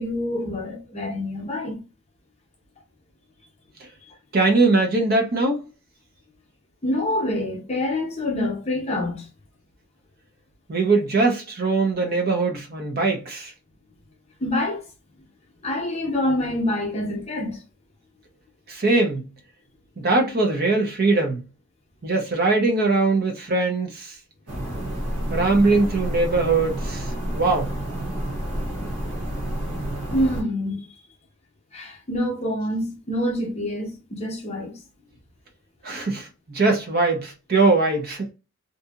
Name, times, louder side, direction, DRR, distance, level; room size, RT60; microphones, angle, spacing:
voice 1, 0.0-1.8 6.8-9.3 14.4-14.8 15.6-17.6 30.1-30.9 31.7-34.8, left 1 dB, 30° left, 0.7 m, -26 dB
voice 2, 4.3-5.6 10.7-13.5 18.7-19.2 20.0-21.4 22.0-24.2 25.3-27.7 35.8-38.3, right 3 dB, 45° right, 0.5 m, -21 dB
sound 1, 24.5-30.4, right 1 dB, 85° right, 1.0 m, -29 dB
2.7 x 2.6 x 2.3 m
head